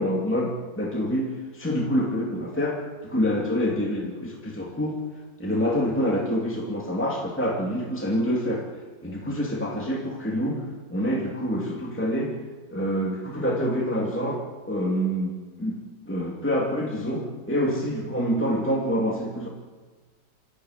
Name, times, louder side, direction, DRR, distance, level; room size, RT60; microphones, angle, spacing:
voice 1, 0.0-5.0 5.4-8.7 9.0-12.4 12.7-19.5, equal, 5° left, -2 dB, 2.6 m, -27 dB
27.5 x 14.0 x 9.6 m, 1.4 s
omnidirectional pair, 1.9 m